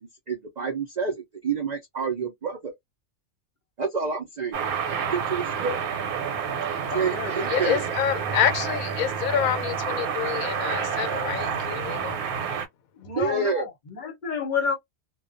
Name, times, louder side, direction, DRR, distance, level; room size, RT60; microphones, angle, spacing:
voice 1, 0.3-2.7 3.8-4.6 5.1-5.8 6.9-7.8 13.2-13.7, right 5 dB, 65° right, 0.4 m, -28 dB
sound 1, 4.5-12.7, right 7 dB, 90° right, 1.1 m, -29 dB
voice 2, 6.8-7.8 13.0-14.7, left 5 dB, 40° left, 0.8 m, -31 dB
voice 3, 7.5-12.2, left 9 dB, 80° left, 1.0 m, -27 dB
2.3 x 2.2 x 2.5 m
omnidirectional pair, 1.5 m